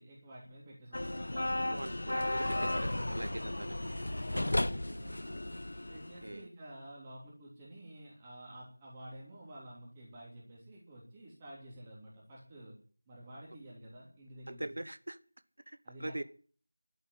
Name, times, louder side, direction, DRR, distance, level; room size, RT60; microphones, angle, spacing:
voice 1, 0.0-1.8 4.3-5.4 5.9-12.8 13.1-14.8 15.8-16.2, right 1 dB, 15° right, -5 dB, 3.2 m, -50 dB
sound 1, 0.9-6.3, left 1 dB, 75° left, 0.6 m, -34 dB
voice 2, 1.7-3.8 6.2-6.4 14.5-15.2 15.7-16.2, right 1 dB, 65° right, 13 dB, 1.5 m, -41 dB
12.0 x 8.1 x 10.0 m, 0.43 s
figure-of-eight pair, 175°, 0 cm